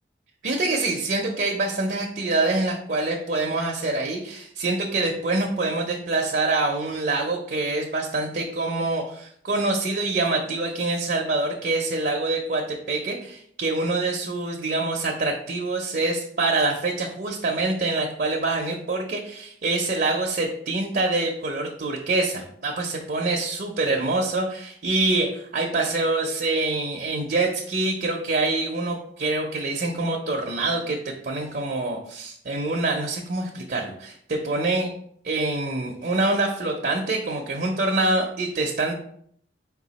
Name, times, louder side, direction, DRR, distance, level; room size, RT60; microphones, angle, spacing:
voice 1, 0.4-34.9 35.3-38.9, right 2 dB, 50° right, 0 dB, 0.5 m, -25 dB
4.7 x 2.3 x 4.0 m, 0.65 s
head